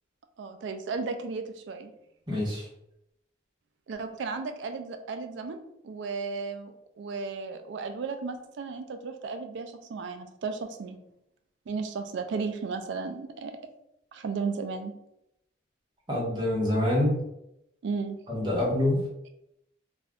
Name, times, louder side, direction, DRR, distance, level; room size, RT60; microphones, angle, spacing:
voice 1, 0.4-1.9 3.9-5.6 5.8-11.0 11.7-13.6 14.1-14.9 17.8-18.2, right 4 dB, 65° right, 7 dB, 0.3 m, -34 dB
voice 2, 2.3-2.6 16.1-17.2 18.3-19.0, left 1 dB, 20° right, -4 dB, 0.8 m, -26 dB
2.4 x 2.2 x 3.5 m, 0.82 s
head